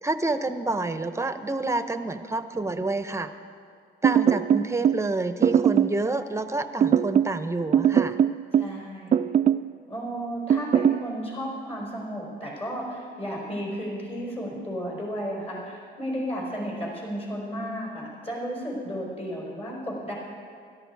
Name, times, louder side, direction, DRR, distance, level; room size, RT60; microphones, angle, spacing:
voice 1, 0.0-3.3 4.0-8.2, right 2 dB, 15° right, 10 dB, 0.8 m, -28 dB
sound 1, 4.0-5.0 5.4-6.0 6.8-7.4 7.7-8.8 9.1-9.7 10.5-11.0, right 9 dB, 35° right, 0.4 m, -20 dB
voice 2, 8.5-9.3 9.9-20.1, equal, 30° left, -2 dB, 4.8 m, -33 dB
16.5 x 13.0 x 4.7 m, 2.2 s
cardioid pair, 90°, 20 cm